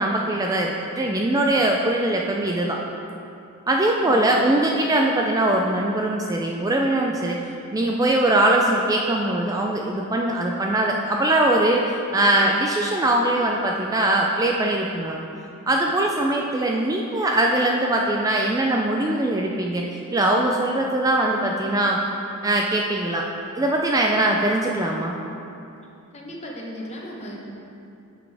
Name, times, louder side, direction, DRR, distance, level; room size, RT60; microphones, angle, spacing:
voice 1, 0.0-2.8 3.7-7.4 7.7-15.3 15.7-22.0 22.4-23.3 23.6-25.1, right 1 dB, 15° right, 0 dB, 0.3 m, -21 dB
voice 2, 4.0-4.4 26.1-27.4, equal, 30° left, -2 dB, 1.0 m, -36 dB
8.3 x 6.0 x 3.4 m, 2.6 s
head